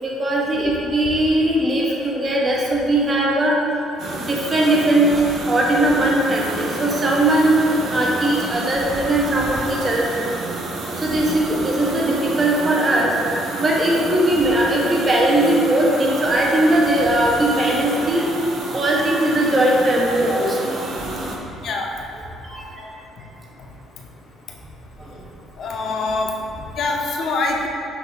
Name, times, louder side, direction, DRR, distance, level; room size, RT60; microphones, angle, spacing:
voice 1, 0.0-3.6 4.2-10.3 11.0-13.1 13.6-18.3 18.7-20.7 22.5-22.7 25.1-25.2, right 1 dB, 30° right, -3 dB, 1.1 m, -19 dB
sound 1, 4.0-21.4, right 2 dB, 60° right, 0.8 m, -30 dB
voice 2, 25.6-26.3 26.8-27.7, left 3 dB, 60° left, 0 dB, 0.8 m, -24 dB
7.6 x 3.4 x 4.1 m, 2.7 s
cardioid pair, 95°, 0 cm